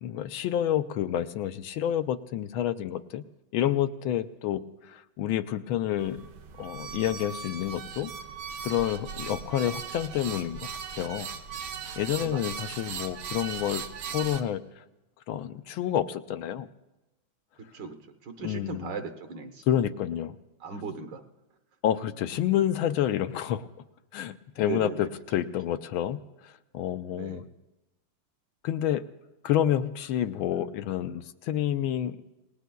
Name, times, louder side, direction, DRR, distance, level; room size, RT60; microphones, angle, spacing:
voice 1, 0.0-3.2 3.5-6.2 6.6-8.1 8.6-10.7 11.0-11.3 12.0-14.8 15.3-16.7 18.4-18.9 19.7-20.4 21.8-23.7 24.1-27.4 28.6-29.1 29.4-32.2, left 11 dB, 80° left, 10 dB, 1.5 m, -29 dB
sound 1, 6.0-14.4, right 7 dB, 90° right, 1.8 m, -38 dB
voice 2, 18.2-19.6 20.6-21.2 24.6-25.1 27.1-27.5, right 5 dB, 60° right, 7 dB, 1.7 m, -37 dB
28.0 x 19.0 x 2.3 m, 1.0 s
omnidirectional pair, 2.2 m